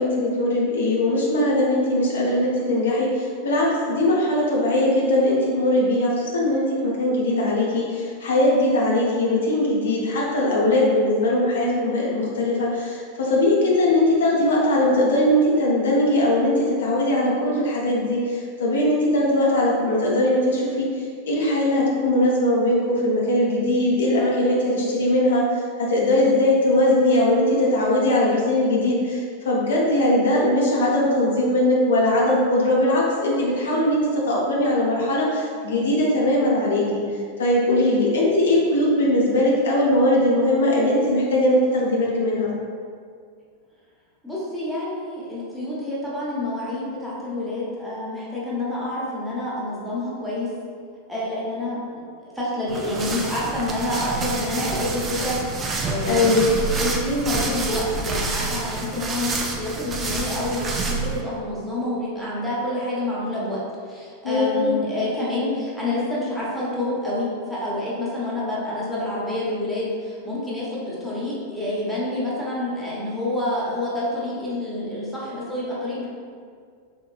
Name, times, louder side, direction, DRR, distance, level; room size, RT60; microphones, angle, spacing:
voice 1, 0.0-20.9 21.2-37.0 37.4-42.5 56.1-56.5 64.2-64.7, left 1 dB, 65° left, -4 dB, 0.5 m, -20 dB
voice 2, 44.2-50.5 51.1-76.1, left 1 dB, ahead, -8 dB, 0.8 m, -28 dB
sound 1, 52.7-61.2, right 3 dB, 25° right, 0.3 m, -28 dB
3.4 x 2.2 x 2.4 m, 2.1 s
figure-of-eight pair, 90°, 0 cm